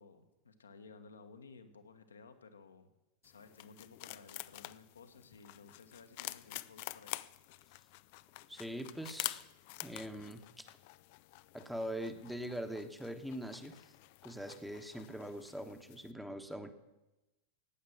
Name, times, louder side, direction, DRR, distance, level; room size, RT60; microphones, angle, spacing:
voice 1, 0.0-2.9 3.2-7.2, left 4 dB, 70° left, 7 dB, 1.3 m, -56 dB
sound 1, 3.2-16.1, left 19 dB, 50° left, 0.4 m, -48 dB
voice 2, 8.5-9.5 9.8-10.7 11.5-13.8 14.2-16.7, equal, ahead, 8 dB, 1.1 m, -42 dB
15.5 x 9.3 x 6.5 m, 1.0 s
figure-of-eight pair, 90°, 0 cm